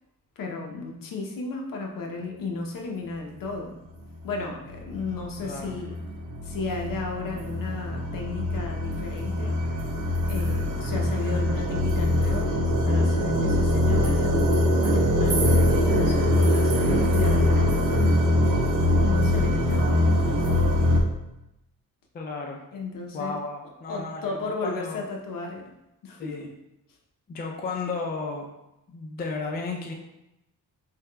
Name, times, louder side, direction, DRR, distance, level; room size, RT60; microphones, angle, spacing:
voice 1, 0.4-3.7 4.2-6.0 6.4-9.6 10.2-18.0 19.0-20.8 22.7-23.4 23.9-25.7 26.0-26.5, left 3 dB, 65° left, 1 dB, 0.7 m, -34 dB
sound 1, 4.1-4.2 4.7-21.0, left 1 dB, 60° right, 0.7 m, -23 dB
voice 2, 5.4-5.8 22.1-22.6 23.1-25.0 26.2-26.5 27.3-28.5 28.9-29.9, left 4 dB, 30° left, 1 dB, 0.4 m, -33 dB
3.9 x 3.4 x 2.2 m, 0.91 s
wide cardioid pair, 135°, 36 cm